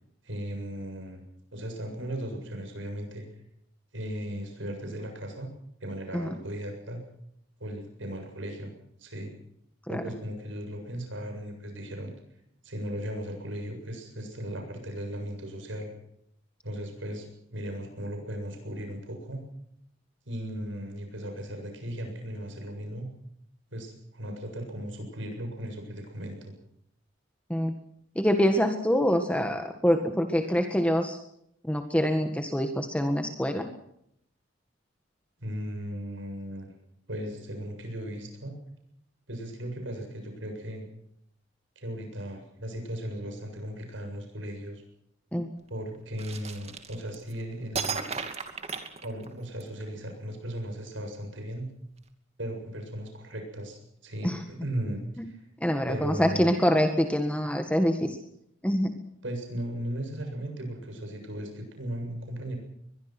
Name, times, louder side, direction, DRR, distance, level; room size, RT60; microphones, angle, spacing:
voice 1, 0.2-1.2 1.5-3.3 3.9-5.5 5.8-7.0 7.6-8.7 9.0-9.3 9.9-12.1 12.6-15.9 16.6-19.4 20.3-23.1 23.7-26.5 35.4-36.7 37.1-38.6 39.3-40.9 41.8-44.8 45.7-48.0 49.0-51.7 52.4-55.4 55.9-56.6 59.2-62.6, right 1 dB, 75° right, 4 dB, 7.5 m, -37 dB
voice 2, 28.1-31.2 31.6-33.7 45.3-45.5 54.2-54.4 55.6-58.2 58.6-59.0, equal, 5° left, 5 dB, 1.7 m, -25 dB
sound 1, 46.2-47.3 47.7-49.6, right 5 dB, 35° right, 2.6 m, -34 dB
23.0 x 22.5 x 6.1 m, 0.73 s
head